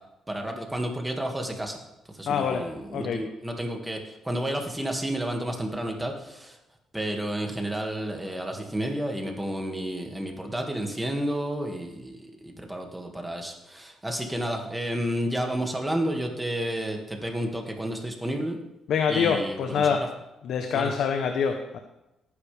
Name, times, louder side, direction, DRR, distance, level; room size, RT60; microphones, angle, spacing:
voice 1, 0.3-1.8 2.1-6.6 6.9-18.6 19.1-20.1 20.7-20.9, right 1 dB, 10° right, 2 dB, 2.1 m, -31 dB
voice 2, 2.2-2.6 2.9-3.2 18.9-20.0 20.4-21.8, left 7 dB, 75° left, 5 dB, 1.0 m, -25 dB
17.5 x 9.8 x 3.5 m, 0.93 s
cardioid pair, 90°, 0 cm